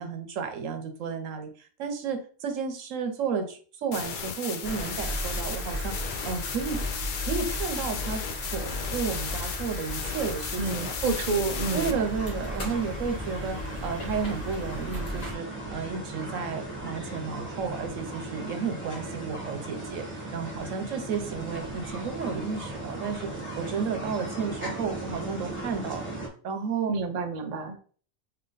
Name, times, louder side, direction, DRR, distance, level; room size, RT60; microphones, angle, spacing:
voice 1, 0.0-5.9 6.2-6.8 7.2-8.2 8.5-10.9 11.7-23.3 23.6-26.1 26.4-27.0, right 5 dB, 70° right, 7 dB, 1.1 m, -32 dB
sound 1, 3.9-11.9, left 6 dB, 65° left, 0.4 m, -35 dB
sound 2, 4.6-15.3, left 1 dB, 35° left, 1.0 m, -35 dB
voice 2, 10.6-12.0 26.9-27.8, right 4 dB, 55° right, 5 dB, 0.4 m, -29 dB
sound 3, 11.5-26.3, right 2 dB, 10° right, 1.2 m, -37 dB
3.4 x 3.0 x 3.9 m, 0.43 s
omnidirectional pair, 1.4 m